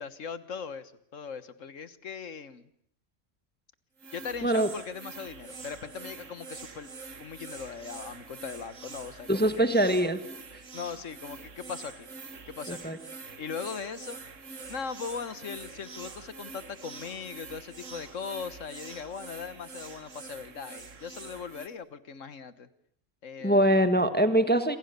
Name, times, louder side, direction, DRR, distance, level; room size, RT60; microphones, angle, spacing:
voice 1, 0.0-2.7 4.1-6.9 7.2-9.7 10.7-12.1 12.5-12.9 13.4-14.2 14.7-22.7 23.2-23.7, left 6 dB, 75° left, 13 dB, 1.7 m, -39 dB
sound 1, 4.0-21.7, right 4 dB, 75° right, 2.1 m, -45 dB
voice 2, 9.3-10.2 10.5-10.6 12.7-13.0 23.4-24.8, right 1 dB, 10° left, 9 dB, 1.4 m, -23 dB
27.5 x 26.5 x 6.8 m, 0.66 s
omnidirectional pair, 1.3 m